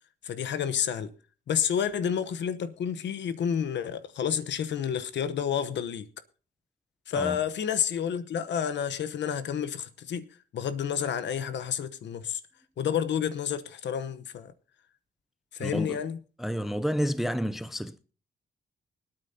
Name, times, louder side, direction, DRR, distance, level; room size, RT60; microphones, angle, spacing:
voice 1, 0.2-1.1 1.5-6.1 7.1-10.3 10.5-12.4 12.8-14.5 15.5-16.2, left 8 dB, 80° left, 0.9 m, -30 dB
voice 2, 15.6-16.0 16.4-18.0, equal, ahead, 0.5 m, -30 dB
24.0 x 8.9 x 2.8 m
cardioid pair, 100°, 18 cm